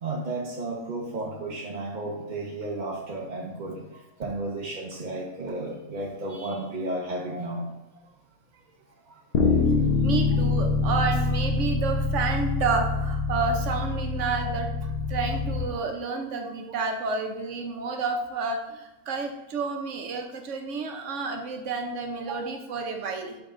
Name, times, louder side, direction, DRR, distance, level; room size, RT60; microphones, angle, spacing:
voice 1, 0.0-3.8 4.2-7.6 10.3-10.4, right 2 dB, 40° right, -3 dB, 0.7 m, -33 dB
Bass guitar, 9.3-15.6, left 3 dB, 45° left, 1.0 m, -25 dB
voice 2, 10.0-23.4, right 4 dB, 60° right, 4 dB, 1.1 m, -30 dB
6.2 x 5.1 x 3.7 m, 0.98 s
omnidirectional pair, 1.6 m